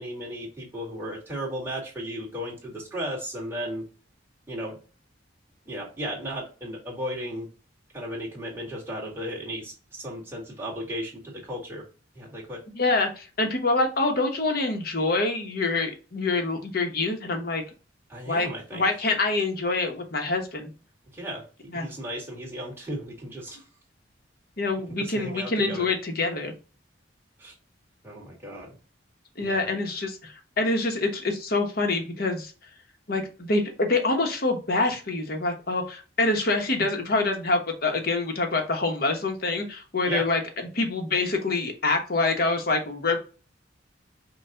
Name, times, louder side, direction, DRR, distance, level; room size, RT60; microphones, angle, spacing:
voice 1, 0.0-3.9 4.5-4.8 5.7-7.5 7.9-11.8 12.1-12.6 18.1-18.9 21.1-21.4 21.7-23.6 24.9-25.9 27.4-27.5 28.0-28.8 29.4-29.7 40.1-40.2, equal, 10° right, -5 dB, 2.0 m, -35 dB
voice 2, 12.7-17.6 18.2-20.7 21.7-21.9 24.6-26.5 29.4-32.5 33.1-43.2, left 3 dB, 55° left, 4 dB, 1.1 m, -26 dB
5.6 x 2.5 x 3.8 m, 0.34 s
head